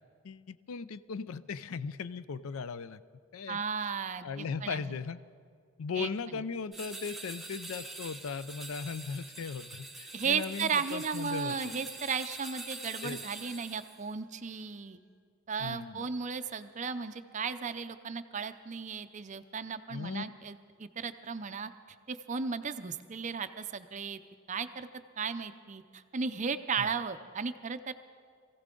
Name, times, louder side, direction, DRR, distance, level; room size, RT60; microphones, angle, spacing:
voice 1, 0.2-3.0 3.3-3.6 4.2-5.2 5.8-11.8 13.0-13.2 15.6-16.1 19.9-20.2 26.8-26.9, left 5 dB, 70° left, 15 dB, 0.4 m, -38 dB
voice 2, 3.5-5.0 6.0-6.4 10.1-15.0 15.5-21.7 22.1-24.2 24.5-24.9 25.2-27.9, right 5 dB, 35° right, 11 dB, 0.5 m, -35 dB
sound 1, 6.7-14.0, right 2 dB, ahead, 0.8 m, -45 dB
22.5 x 15.5 x 3.8 m, 2.2 s
head